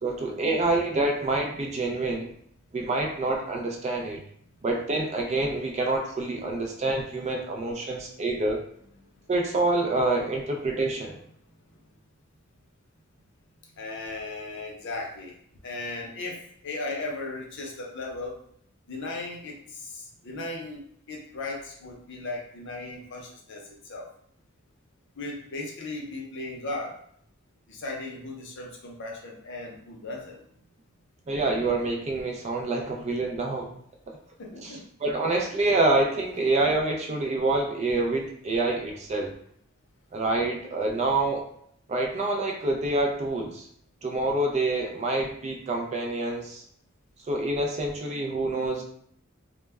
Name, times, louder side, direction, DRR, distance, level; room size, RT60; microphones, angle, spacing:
voice 1, 0.0-2.3 2.7-4.2 4.6-8.6 9.3-11.2 31.3-33.7 34.1-34.2 34.6-39.3 40.1-41.5 41.9-43.6 44.0-46.6 47.3-48.8, right 2 dB, 30° right, 1 dB, 0.4 m, -27 dB
voice 2, 13.8-15.3 15.6-18.4 18.9-20.8 21.1-24.1 25.2-27.0 27.7-30.4 34.4-34.8, left 2 dB, 55° left, -1 dB, 0.6 m, -37 dB
2.1 x 2.1 x 3.4 m, 0.66 s
head